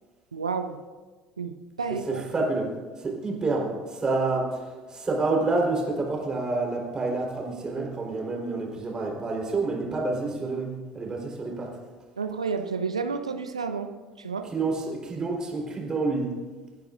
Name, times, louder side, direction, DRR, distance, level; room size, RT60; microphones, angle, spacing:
voice 1, 0.3-0.8 1.4-1.5 1.8-2.2 12.2-13.9 14.2-14.5, right 5 dB, 80° right, 8 dB, 0.6 m, -30 dB
voice 2, 2.1-2.7 3.0-11.8 14.5-16.4, right 3 dB, 25° right, -1 dB, 4.2 m, -28 dB
27.5 x 10.5 x 2.6 m, 1.4 s
figure-of-eight pair, 60°, 3 cm